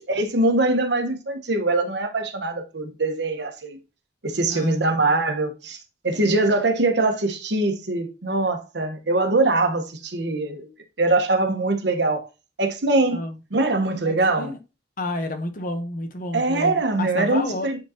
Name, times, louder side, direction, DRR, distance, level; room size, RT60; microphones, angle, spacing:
voice 1, 0.0-3.8 4.2-5.8 6.0-10.7 11.0-12.3 12.6-13.2 13.5-14.5 16.3-17.8, right 2 dB, 65° right, 1.2 m, -22 dB
voice 2, 14.0-14.6 15.0-17.7, left 2 dB, 45° left, 1.0 m, -30 dB
9.3 x 3.9 x 2.9 m
head